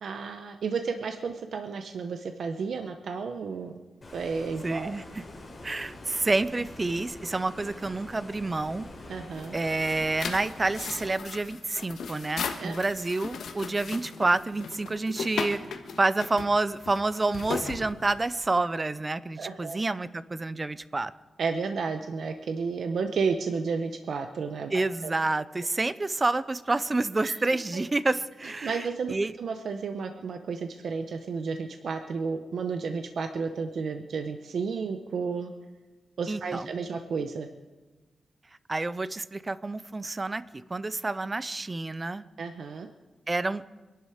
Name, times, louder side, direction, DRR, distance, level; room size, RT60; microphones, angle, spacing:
voice 1, 0.0-3.7 4.1-4.9 9.1-9.6 12.6-12.8 19.4-19.8 21.4-25.1 27.2-27.3 28.6-35.5 36.2-37.5 42.4-42.9, right 5 dB, 65° right, 6 dB, 0.9 m, -32 dB
Stream, 4.0-11.2, left 2 dB, 30° left, 3.6 m, -45 dB
voice 2, 4.6-5.2 5.6-8.9 9.5-15.6 16.0-21.1 24.7-29.3 36.3-36.7 38.7-40.4 40.7-42.2 43.3-43.6, right 2 dB, 20° right, 15 dB, 0.5 m, -28 dB
sound 1, 9.3-18.5, left 5 dB, 85° left, 1.4 m, -37 dB
24.0 x 11.5 x 5.0 m, 1.2 s
wide cardioid pair, 155°, 0 cm